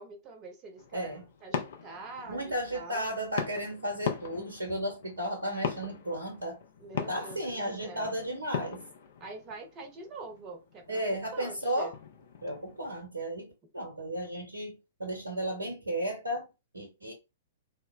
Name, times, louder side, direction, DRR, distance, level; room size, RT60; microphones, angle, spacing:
voice 1, 0.0-1.1 1.4-3.1 6.8-8.1 9.2-11.9, right 3 dB, 30° right, 0.7 m, -45 dB
sound 1, 0.8-12.9, left 7 dB, 55° left, 0.5 m, -40 dB
voice 2, 0.9-1.2 2.3-6.6 7.1-8.8 10.9-11.9 12.4-16.5 16.7-17.1, right 1 dB, 75° right, 0.6 m, -34 dB
3.1 x 2.0 x 2.3 m
figure-of-eight pair, 110°, 0 cm